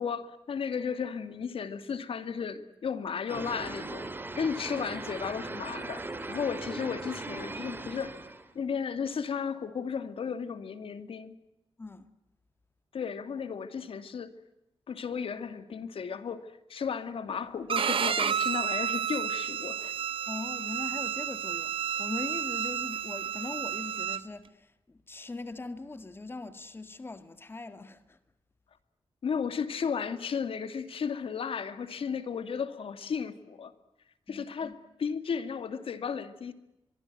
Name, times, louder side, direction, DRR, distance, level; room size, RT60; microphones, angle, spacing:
voice 1, 0.0-4.1 4.4-8.1 8.5-11.4 12.9-14.3 14.9-19.9 29.2-33.7 34.3-36.5, left 6 dB, 75° left, 2.2 m, -34 dB
sound 1, 3.3-8.5, right 2 dB, 20° right, 2.7 m, -39 dB
voice 2, 11.8-12.1 20.3-28.2 34.3-34.7, left 3 dB, 25° left, 1.9 m, -41 dB
Bowed string instrument, 17.7-24.2, right 8 dB, 70° right, 1.1 m, -31 dB
24.5 x 23.5 x 9.1 m
wide cardioid pair, 135°, 9 cm